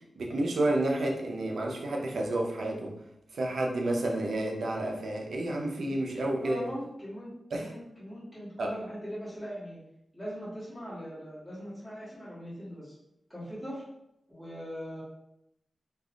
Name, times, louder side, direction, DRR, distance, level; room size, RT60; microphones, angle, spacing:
voice 1, 0.2-2.9 3.3-6.6 7.5-7.7 8.6-8.7, right 1 dB, 85° right, 0 dB, 0.5 m, -30 dB
voice 2, 6.4-9.8 10.1-13.0 13.3-13.8 14.3-15.0, equal, ahead, -10 dB, 1.1 m, -41 dB
3.3 x 2.4 x 2.4 m, 0.82 s
wide cardioid pair, 110°, 0 cm